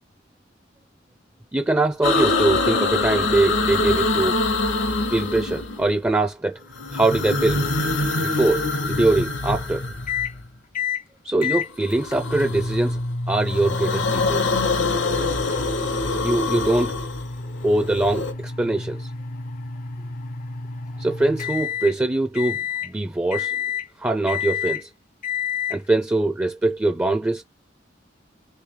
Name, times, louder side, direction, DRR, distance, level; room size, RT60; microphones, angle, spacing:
voice 1, 1.5-4.3 5.1-6.6 6.9-7.7 8.2-9.9 11.2-13.0 13.3-14.5 16.2-17.0 17.6-19.1 21.0-23.6 24.0-24.9 25.7-27.4, right 2 dB, 10° right, 0.4 m, -22 dB
sound 1, 2.0-6.0 6.7-10.5 11.8-13.0 13.3-18.3, left 3 dB, 75° left, 1.0 m, -24 dB
sound 2, 10.1-10.3 10.7-11.0 11.4-21.9 22.3-22.9 23.3-23.9 24.3-24.8 25.2-25.8, left 5 dB, 45° left, 0.5 m, -30 dB
3.2 x 3.1 x 3.6 m
head